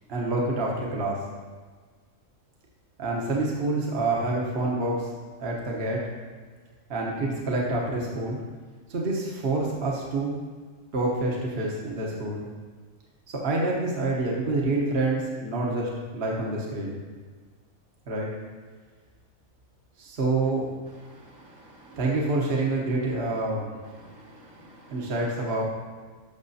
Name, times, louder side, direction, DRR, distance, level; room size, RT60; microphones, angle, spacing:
voice 1, 0.1-1.2 3.0-5.1 5.4-6.0 6.9-8.4 8.9-10.4 10.9-12.5 13.3-17.0 18.1-18.3 20.0-20.7 21.9-23.7 24.9-25.6, right 2 dB, 50° right, -3 dB, 1.2 m, -27 dB
voice 2, 21.1-22.0 23.9-25.1, right 1 dB, 70° right, -3 dB, 1.7 m, -51 dB
12.0 x 6.1 x 2.7 m, 1.5 s
omnidirectional pair, 1.4 m